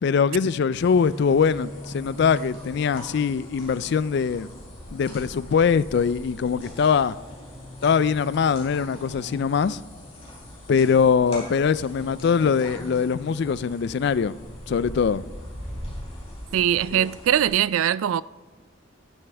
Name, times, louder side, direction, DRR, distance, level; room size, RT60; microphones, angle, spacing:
voice 1, 0.0-4.5 4.9-7.1 7.8-9.8 10.7-14.4 14.7-15.2 16.9-17.1, left 6 dB, 55° left, 0.3 m, -22 dB
sound 1, 0.7-17.5, left 1 dB, 30° left, 3.6 m, -40 dB
voice 2, 16.5-18.2, right 10 dB, 80° right, 0.3 m, -21 dB
12.0 x 12.0 x 3.4 m
head